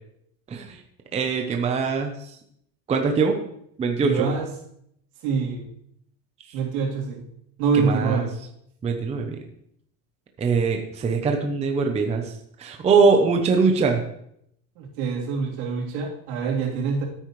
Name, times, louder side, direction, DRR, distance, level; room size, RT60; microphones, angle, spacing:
voice 1, 1.1-2.1 2.9-3.4 3.8-4.3 7.7-8.2 8.8-9.4 10.4-12.3 12.6-14.0, right 4 dB, 15° right, 4 dB, 0.7 m, -22 dB
voice 2, 4.0-4.5 5.2-5.6 6.5-7.2 7.6-8.3 14.8-17.0, right 5 dB, 75° right, -3 dB, 3.4 m, -25 dB
14.0 x 8.9 x 3.2 m, 0.73 s
cardioid pair, 160°, 42 cm